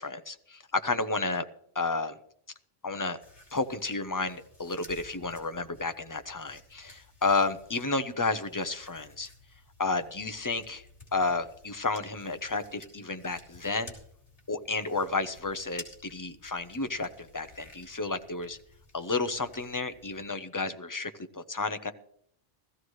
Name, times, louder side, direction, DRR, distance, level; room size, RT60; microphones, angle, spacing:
voice 1, 0.0-1.4 1.7-2.1 2.8-3.2 3.5-9.3 9.8-10.8 11.1-13.9 14.5-18.6 18.9-21.9, left 3 dB, 20° left, 9 dB, 0.6 m, -31 dB
sound 1, 3.2-20.3, left 2 dB, 80° left, 3.4 m, -54 dB
16.0 x 14.5 x 3.2 m, 0.67 s
omnidirectional pair, 1.1 m